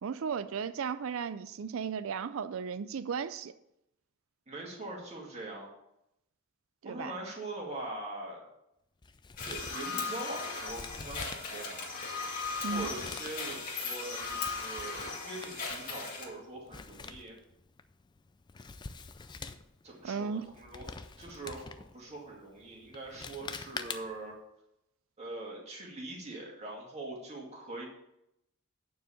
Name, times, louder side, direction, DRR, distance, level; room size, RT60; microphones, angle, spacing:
voice 1, 0.0-3.5 6.8-7.1 12.6-12.9 20.0-20.5, right 6 dB, 65° right, 13 dB, 0.4 m, -35 dB
voice 2, 4.5-5.7 6.8-8.4 9.4-12.0 12.7-17.4 19.8-20.9 21.2-24.3 25.2-27.8, right 2 dB, 30° right, -2 dB, 2.2 m, -42 dB
Male speech man speaking, 9.0-24.3, left 4 dB, 20° left, 0.3 m, -47 dB
sound 1, 9.4-16.2, left 4 dB, 40° left, 2.1 m, -37 dB
9.1 x 4.7 x 7.0 m, 0.82 s
head